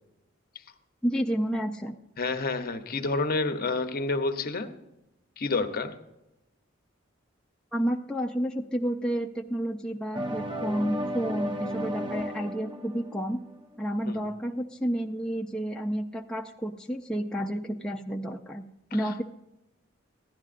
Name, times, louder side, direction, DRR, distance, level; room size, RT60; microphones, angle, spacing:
voice 1, 1.0-2.0 7.7-13.4 13.8-18.7 18.9-19.2, equal, 5° left, 0 dB, 0.4 m, -30 dB
voice 2, 2.2-4.7 5.4-5.9 14.1-14.2 19.0-19.1, left 3 dB, 50° left, 8 dB, 0.8 m, -29 dB
sound 1, 10.1-14.0, equal, 25° right, 0.9 m, -34 dB
15.0 x 11.0 x 2.5 m, 0.90 s
head